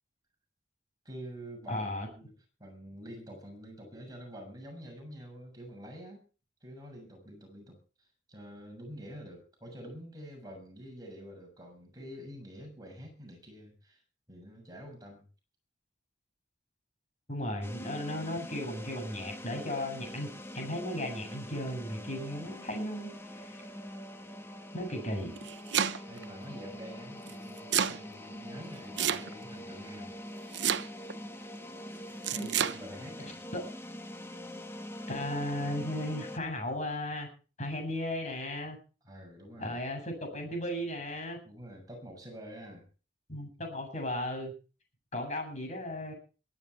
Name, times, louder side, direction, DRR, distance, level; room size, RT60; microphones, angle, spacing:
voice 1, 1.0-2.3 2.6-6.3 6.6-14.0 14.3-15.2 17.4-17.5 26.1-30.1 32.3-33.4 39.0-39.8 41.4-42.9, equal, 20° right, 2 dB, 6.8 m, -47 dB
voice 2, 1.7-2.1 17.3-20.3 20.5-23.6 24.7-25.4 32.4-32.5 33.5-33.6 35.1-37.3 37.6-38.8 39.6-41.4 43.3-44.5 45.1-46.1, left 1 dB, 40° left, 4 dB, 7.7 m, -35 dB
sound 1, 17.6-36.4, left 1 dB, 15° left, 1.6 m, -44 dB
Domestic sounds home sounds, 25.2-26.2 27.3-28.0 29.0-29.6 30.5-31.2 32.2-32.8, right 9 dB, 75° right, 0.9 m, -29 dB
22.5 x 11.0 x 4.6 m, 0.36 s
head